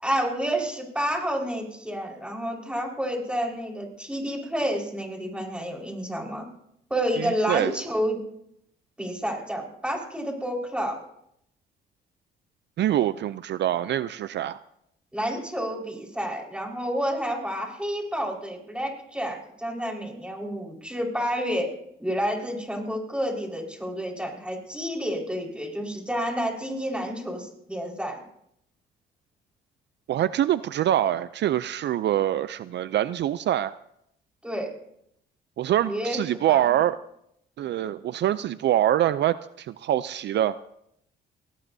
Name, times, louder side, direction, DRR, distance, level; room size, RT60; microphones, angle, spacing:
voice 1, 0.0-6.4 6.9-8.2 9.0-11.0 15.1-21.7 22.0-28.2 34.4-34.7 35.8-36.2 36.5-36.8, equal, 5° right, 0 dB, 4.6 m, -29 dB
voice 2, 7.2-7.7 12.8-14.6 30.1-33.8 35.6-37.0 37.6-40.6, right 12 dB, 60° right, 15 dB, 0.5 m, -24 dB
23.0 x 18.0 x 2.7 m, 0.76 s
cardioid pair, 90°, 20 cm